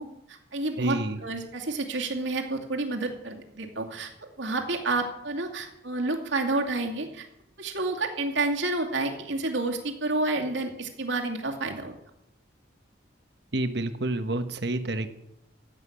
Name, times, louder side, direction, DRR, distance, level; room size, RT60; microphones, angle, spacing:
voice 1, 0.0-7.3 7.6-12.0, right 2 dB, 75° right, 2 dB, 2.5 m, -30 dB
voice 2, 0.8-1.2 13.5-15.1, right 2 dB, 55° right, 10 dB, 1.1 m, -28 dB
15.0 x 8.2 x 9.8 m, 0.86 s
head